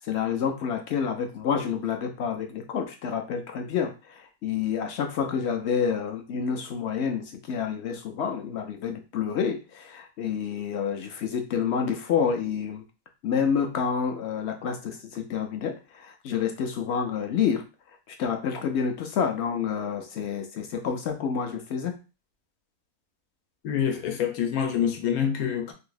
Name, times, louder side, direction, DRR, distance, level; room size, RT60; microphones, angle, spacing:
voice 1, 0.0-12.8 13.2-17.6 18.1-22.0, left 7 dB, 65° left, 0.7 m, -28 dB
voice 2, 23.6-25.7, left 8 dB, 90° left, 1.2 m, -26 dB
2.8 x 2.6 x 3.9 m
omnidirectional pair, 1.5 m